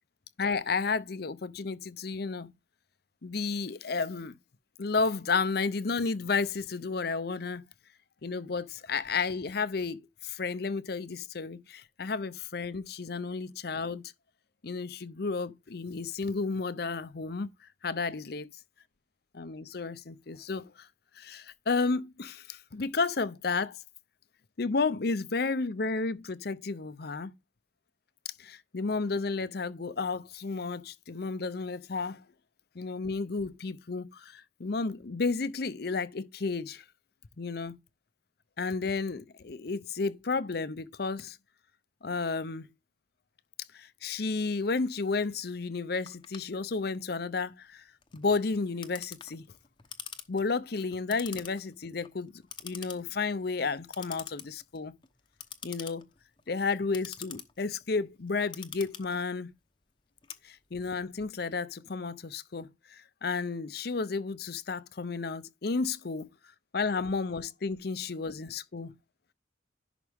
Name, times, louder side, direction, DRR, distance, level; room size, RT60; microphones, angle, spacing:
voice 1, 0.4-2.5 3.2-4.4 4.8-7.6 8.2-14.0 14.6-17.5 17.8-18.5 19.3-20.9 21.2-23.8 24.6-27.3 28.4-32.2 32.8-36.8 37.4-37.8 38.6-41.4 42.0-42.7 43.7-47.8 48.1-49.4 50.3-52.3 52.6-54.9 55.6-56.0 56.5-59.5 60.4-66.3 66.7-68.9, left 4 dB, 55° left, 0.6 m, -32 dB
Clock, 46.1-61.0, left 8 dB, 25° left, 0.9 m, -47 dB
11.0 x 4.9 x 3.5 m
head